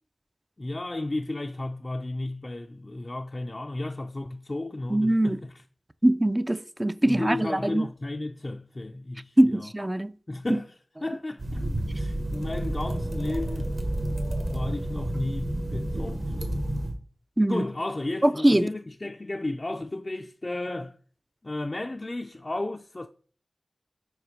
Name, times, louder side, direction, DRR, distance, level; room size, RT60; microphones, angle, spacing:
voice 1, 0.6-5.6 7.1-9.7 10.3-10.7 11.0-13.7 14.5-16.5 17.5-21.0 21.4-23.1, left 2 dB, 45° left, 0.4 m, -33 dB
voice 2, 4.9-5.4 6.0-7.9 9.4-10.1 17.4-17.7 18.2-18.7, right 1 dB, 25° right, 0.4 m, -22 dB
sound 1, 11.4-16.9, right 1 dB, 55° right, 1.4 m, -30 dB
5.0 x 4.7 x 5.0 m
cardioid pair, 40°, 0 cm